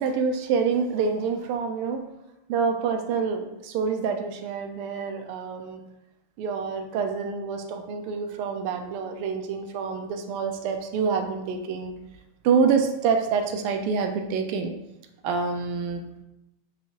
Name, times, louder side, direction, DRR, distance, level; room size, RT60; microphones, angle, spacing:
voice 1, 0.0-2.0 2.5-5.8 6.4-11.9 12.4-14.7 15.2-16.0, right 5 dB, 50° right, 6 dB, 0.3 m, -26 dB
3.0 x 2.3 x 2.8 m, 0.92 s
supercardioid pair, 145°, 0 cm